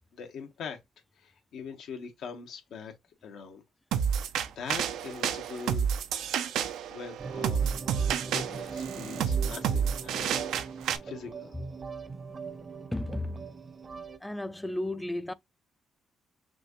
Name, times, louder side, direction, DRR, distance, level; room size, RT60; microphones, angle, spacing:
voice 1, 0.1-0.8 1.1-2.9 3.2-3.6 4.1-6.1 6.9-7.7 8.3-11.5, left 6 dB, 75° left, 1.3 m, -42 dB
sound 1, 3.9-11.0, right 8 dB, 85° right, 0.6 m, -30 dB
sound 2, 7.2-14.2, right 5 dB, 35° right, 0.7 m, -40 dB
voice 2, 12.9-13.5 14.2-15.3, left 1 dB, 10° left, 0.4 m, -33 dB
6.0 x 2.5 x 3.0 m
cardioid pair, 90°, 0 cm